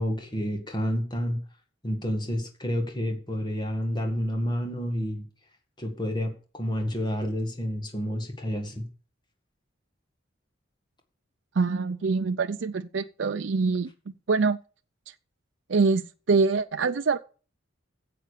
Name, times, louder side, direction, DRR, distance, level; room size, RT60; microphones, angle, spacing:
voice 1, 0.0-1.4 1.8-5.2 5.8-8.9, equal, 20° left, 2.1 m, -29 dB
voice 2, 11.5-13.9 14.3-14.6 15.1-15.2 15.7-17.2, right 4 dB, 65° right, 0.5 m, -24 dB
9.5 x 7.8 x 6.7 m
head